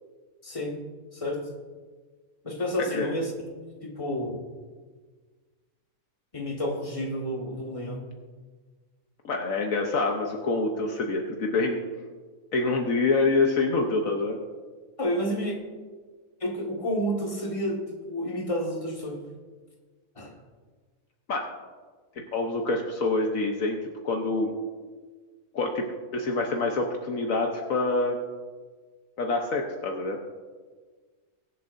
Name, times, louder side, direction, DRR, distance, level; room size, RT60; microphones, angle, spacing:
voice 1, 0.4-0.8 1.1-1.4 2.4-3.3 3.8-4.4 6.3-8.0 15.0-15.6 16.4-19.2 20.1-20.3, equal, 20° left, -1 dB, 1.7 m, -30 dB
voice 2, 2.8-3.1 9.2-11.8 12.5-14.4 21.3-21.4 22.2-23.8 24.0-24.5 25.5-28.2 29.2-30.2, left 3 dB, 65° left, 2 dB, 1.3 m, -26 dB
22.5 x 7.6 x 2.6 m, 1.4 s
omnidirectional pair, 1.6 m